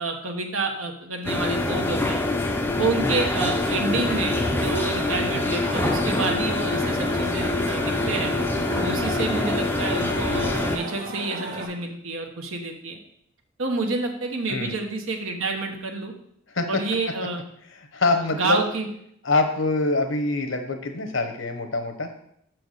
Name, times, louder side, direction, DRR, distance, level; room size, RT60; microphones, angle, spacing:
voice 1, 0.0-2.3 2.8-8.3 8.7-13.0 13.6-16.1 16.7-17.4 18.3-18.9, right 3 dB, 75° right, 3 dB, 1.1 m, -28 dB
sound 1, 1.2-10.8, left 2 dB, 10° left, 0.5 m, -25 dB
sound 2, 3.6-11.7, right 1 dB, 45° right, 1.8 m, -34 dB
voice 2, 16.5-16.8 17.9-18.6 19.2-22.1, left 3 dB, 65° left, 7 dB, 1.0 m, -24 dB
6.3 x 4.5 x 6.4 m, 0.72 s
head